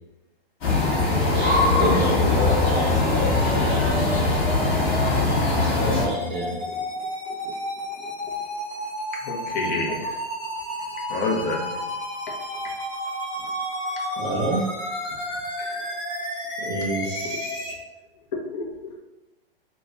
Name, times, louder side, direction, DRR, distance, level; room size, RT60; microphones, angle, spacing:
atmosphere-sunny-birds, 0.6-6.1, left 3 dB, 35° left, 1.4 m, -21 dB
sound 1, 1.1-17.7, equal, 15° left, 1.1 m, -32 dB
voice 1, 1.3-4.3 5.6-6.6 14.2-14.8 16.6-17.7, right 1 dB, 30° right, -1 dB, 0.5 m, -29 dB
voice 2, 9.2-10.1 11.1-11.8 15.6-15.8 18.5-18.9, left 3 dB, 50° left, -2 dB, 1.1 m, -28 dB
3.0 x 2.3 x 3.8 m, 1.0 s
hypercardioid pair, 145°, 29 cm